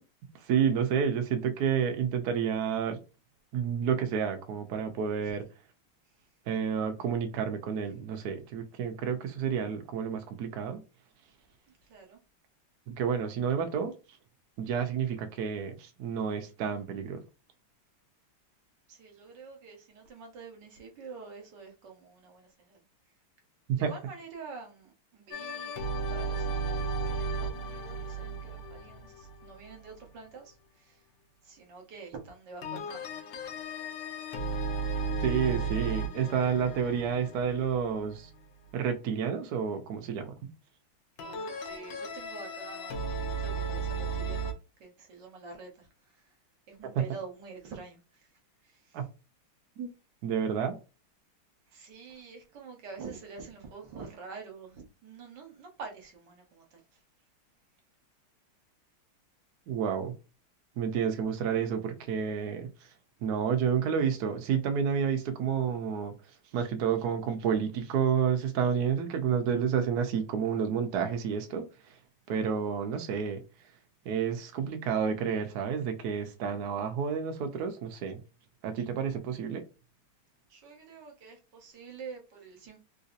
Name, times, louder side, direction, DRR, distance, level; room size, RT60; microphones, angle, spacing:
voice 1, 0.3-3.0 3.5-5.4 6.5-10.8 12.9-13.9 14.6-17.2 23.7-23.9 35.2-38.3 38.7-40.5 46.9-47.0 48.9-49.1 49.8-49.9 50.2-50.8 59.7-60.1 60.8-62.7 63.2-66.1 66.5-72.0 72.3-73.4 74.0-78.2 78.6-79.6, right 7 dB, 75° right, 0.9 m, -30 dB
voice 2, 18.9-22.8 23.7-31.0 31.4-33.0 41.2-44.5 44.8-46.3 46.7-48.3 48.6-49.0 51.7-57.0 80.5-82.8, right 5 dB, 60° right, 1.5 m, -47 dB
sound 1, 25.3-30.0 32.6-38.4 41.2-44.5, right 4 dB, 70° left, 1.4 m, -35 dB
3.7 x 2.7 x 2.5 m
omnidirectional pair, 2.3 m